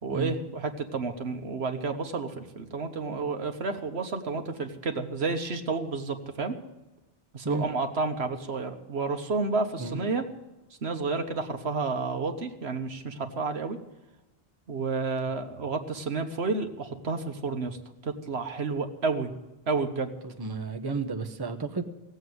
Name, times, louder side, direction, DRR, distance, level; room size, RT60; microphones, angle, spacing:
voice 1, 0.0-6.5 7.3-10.2 10.8-13.8 14.7-17.8 18.0-19.3 19.7-20.1, right 4 dB, 80° right, 6 dB, 1.6 m, -30 dB
voice 2, 20.2-21.8, right 3 dB, 25° right, 6 dB, 1.0 m, -32 dB
17.0 x 8.1 x 9.6 m, 1.0 s
omnidirectional pair, 1.1 m